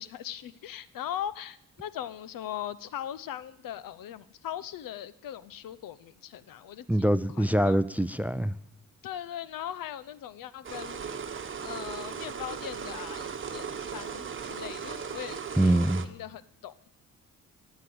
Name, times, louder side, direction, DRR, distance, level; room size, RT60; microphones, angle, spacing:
voice 1, 0.0-7.8 9.0-11.1 11.6-15.7 16.0-16.9, left 10 dB, 75° left, 0.8 m, -40 dB
voice 2, 6.9-8.5 15.6-16.0, right 1 dB, 5° right, 0.4 m, -24 dB
sound 1, 10.6-16.1, right 6 dB, 35° right, 1.2 m, -37 dB
16.5 x 8.4 x 7.8 m
cardioid pair, 80°, 34 cm